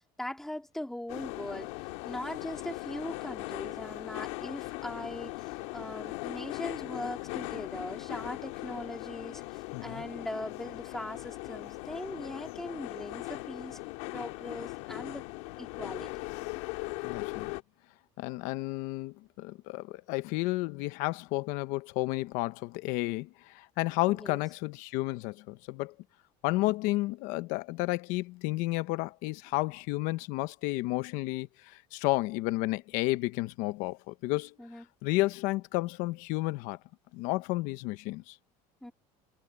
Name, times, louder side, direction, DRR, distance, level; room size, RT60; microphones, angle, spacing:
voice 1, 0.0-1.7 2.0-13.8 14.1-15.2 15.6-16.2 24.1-24.4 34.6-34.8 38.8-38.9, left 1 dB, ahead, 2.5 m, -40 dB
sound 1, 1.1-17.6, left 23 dB, 90° left, 2.5 m, -39 dB
voice 2, 9.7-10.0 17.0-17.5 18.2-25.9 26.4-34.5 35.0-36.8 37.1-38.4, left 20 dB, 65° left, 0.9 m, -32 dB
cardioid pair, 165°, 15 cm